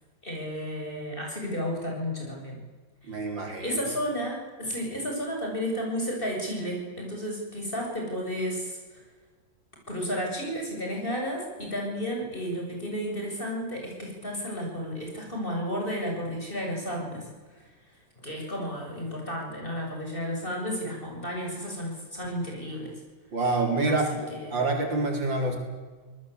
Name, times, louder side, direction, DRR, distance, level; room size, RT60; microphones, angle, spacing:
voice 1, 0.2-2.6 3.0-3.2 3.6-9.0 9.9-17.7 18.2-23.0 23.9-24.0 24.3-24.6, equal, 25° left, 0 dB, 7.9 m, -32 dB
voice 2, 3.0-3.8 23.3-24.1 24.5-25.6, right 2 dB, 80° right, 2 dB, 5.2 m, -26 dB
25.5 x 19.5 x 8.4 m, 1.4 s
omnidirectional pair, 2.0 m